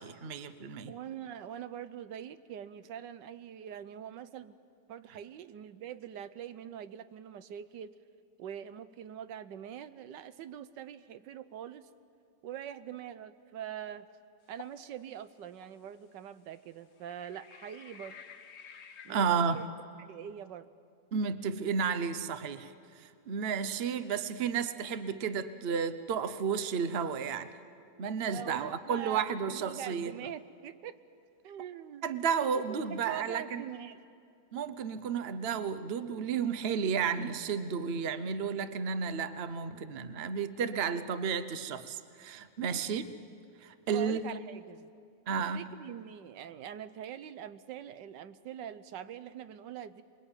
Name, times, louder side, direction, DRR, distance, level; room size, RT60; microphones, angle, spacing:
voice 1, 0.0-0.9 19.1-19.6 21.1-27.5 28.0-30.1 32.0-33.6 34.5-43.1 43.6-44.2 45.3-45.7, right 6 dB, 45° right, 12 dB, 1.0 m, -32 dB
voice 2, 0.9-4.5 4.9-7.9 8.4-11.9 12.4-14.1 14.5-18.2 19.0-19.6 20.0-20.7 28.2-31.0 31.4-34.0 42.7-42.9 43.9-44.9 45.4-50.0, right 9 dB, 90° right, 12 dB, 1.5 m, -44 dB
sound 1, 14.6-14.8 15.6-15.7 17.0-19.7, left 7 dB, 50° left, 1.0 m, -52 dB
27.5 x 22.0 x 9.0 m, 2.3 s
omnidirectional pair, 1.9 m